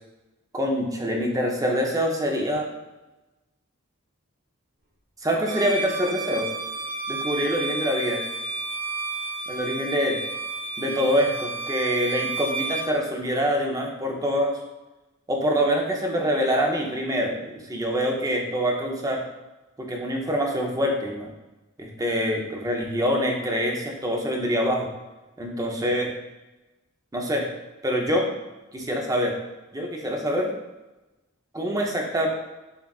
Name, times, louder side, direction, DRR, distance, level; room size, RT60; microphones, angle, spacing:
voice 1, 0.5-2.7 5.2-6.5 7.1-8.2 9.5-10.2 10.8-14.6 15.3-19.2 19.8-21.3 21.8-24.9 25.4-26.1 27.1-27.5 27.8-28.3 28.7-29.3 29.7-30.5 31.5-32.3, equal, 15° right, 1 dB, 0.5 m, -25 dB
Bowed string instrument, 5.4-12.9, right 3 dB, 45° right, 0.9 m, -31 dB
7.0 x 2.4 x 2.3 m, 1.1 s
head